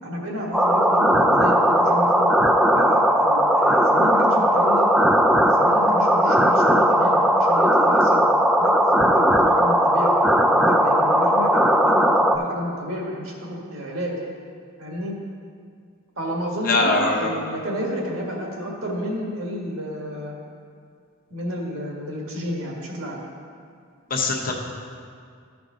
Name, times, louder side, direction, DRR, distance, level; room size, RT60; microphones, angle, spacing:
voice 1, 0.0-2.3 2.7-4.9 5.4-8.3 8.6-10.1 10.5-14.2 14.8-15.1 16.2-20.3 21.3-23.2, equal, 75° right, -2 dB, 1.8 m, -30 dB
sound 1, 0.5-12.4, equal, ahead, 0.3 m, -18 dB
voice 2, 16.6-17.3 24.1-24.5, left 3 dB, 45° left, 0 dB, 0.9 m, -22 dB
14.0 x 4.6 x 3.9 m, 2.2 s
head